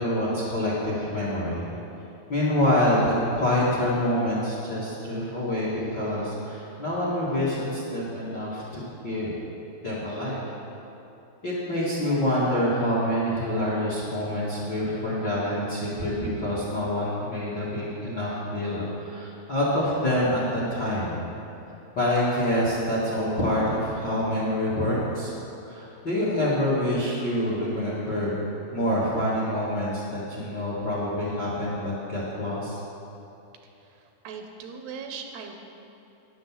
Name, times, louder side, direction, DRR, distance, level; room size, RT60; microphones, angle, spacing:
voice 1, 0.0-1.7 2.3-9.3 9.8-10.6 11.4-21.2 21.9-25.3 25.6-28.4 28.7-32.8, left 1 dB, 40° left, -7 dB, 1.5 m, -26 dB
voice 2, 33.8-35.5, right 5 dB, 80° right, 4 dB, 2.8 m, -39 dB
10.5 x 7.9 x 7.2 m, 2.9 s
omnidirectional pair, 4.7 m